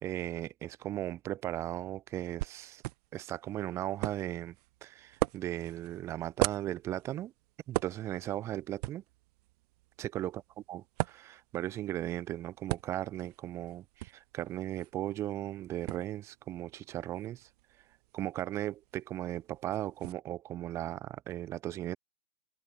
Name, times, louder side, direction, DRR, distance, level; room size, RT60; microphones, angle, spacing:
voice 1, 0.0-2.8 3.1-4.6 4.8-7.3 7.7-9.0 10.0-10.4 10.7-17.5 18.1-22.0, right 13 dB, 10° right, 0.3 m, -37 dB
sound 1, 2.4-20.1, right 19 dB, 40° right, 1.0 m, -41 dB
hypercardioid pair, 125°, 31 cm